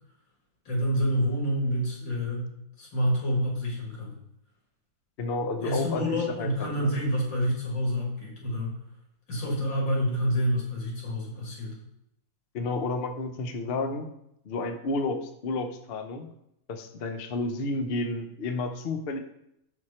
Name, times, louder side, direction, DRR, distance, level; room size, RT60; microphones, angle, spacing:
voice 1, 0.7-2.5 2.8-4.1 5.6-8.7 9.3-11.8, equal, 80° left, -3 dB, 3.1 m, -28 dB
voice 2, 5.2-6.9 12.5-14.1 14.4-16.3 16.7-19.2, left 3 dB, 60° left, 6 dB, 0.6 m, -31 dB
7.2 x 6.3 x 4.3 m, 0.79 s
omnidirectional pair, 2.0 m